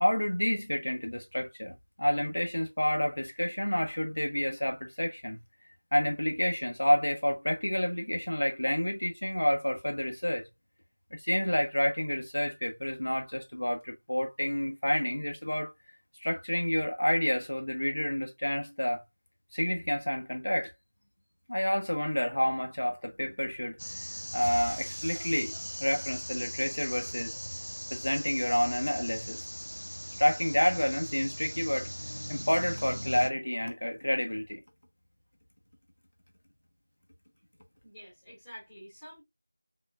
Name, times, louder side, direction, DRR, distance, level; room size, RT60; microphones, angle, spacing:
voice 1, 0.0-5.4 5.9-10.5 11.1-15.7 16.2-19.0 19.5-20.7 21.5-24.0 24.3-25.5 25.8-27.5 27.9-29.4 30.2-34.6, equal, 60° left, 0.9 m, -29 dB
sound 1, 23.8-33.3, equal, 90° left, 0.5 m, -40 dB
sound 2, 24.4-27.1, right 1 dB, 20° right, 0.7 m, -48 dB
voice 2, 37.8-39.2, equal, ahead, 1.4 m, -48 dB
4.5 x 3.1 x 2.3 m
figure-of-eight pair, 175°, 0 cm